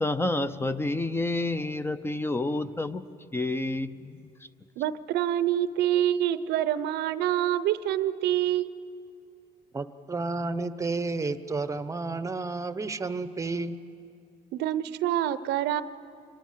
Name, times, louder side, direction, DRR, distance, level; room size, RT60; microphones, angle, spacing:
voice 1, 0.0-3.0 3.3-4.2, left 2 dB, 15° left, 12 dB, 0.6 m, -29 dB
voice 2, 4.8-8.7 14.5-15.8, right 12 dB, 80° right, 15 dB, 0.7 m, -26 dB
voice 3, 9.7-13.8, right 3 dB, 20° right, 13 dB, 0.8 m, -31 dB
26.0 x 19.5 x 7.4 m, 2.5 s
cardioid pair, 110°, 17 cm